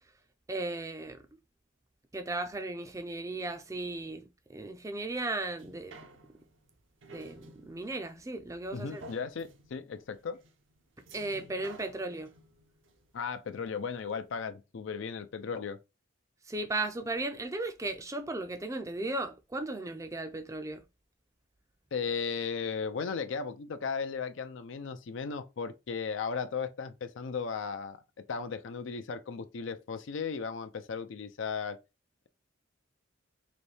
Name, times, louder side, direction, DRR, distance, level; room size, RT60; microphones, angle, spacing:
voice 1, 0.5-1.2 2.1-6.0 7.1-9.0 11.1-12.3 16.5-20.8, right 2 dB, 15° right, 0.4 m, -36 dB
sound 1, 5.5-14.0 14.4-14.5, right 2 dB, 70° right, 0.7 m, -54 dB
voice 2, 8.7-10.4 13.1-15.8 21.9-31.8, left 5 dB, 70° left, 0.4 m, -36 dB
4.1 x 2.6 x 3.3 m
head